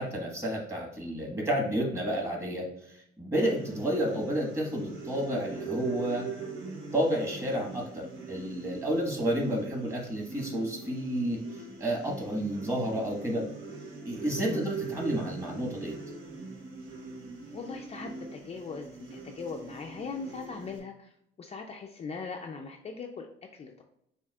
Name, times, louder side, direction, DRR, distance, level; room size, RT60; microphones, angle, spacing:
voice 1, 0.0-6.3 6.9-11.4 11.8-13.5 14.0-16.0, equal, 15° right, -1 dB, 1.5 m, -30 dB
sound 1, 3.3-20.8, right 4 dB, 75° right, 1.0 m, -42 dB
voice 2, 17.5-21.1 21.4-23.3 23.5-23.7, left 4 dB, 30° left, 2 dB, 0.4 m, -39 dB
7.0 x 2.4 x 2.3 m, 0.78 s
cardioid pair, 90°, 20 cm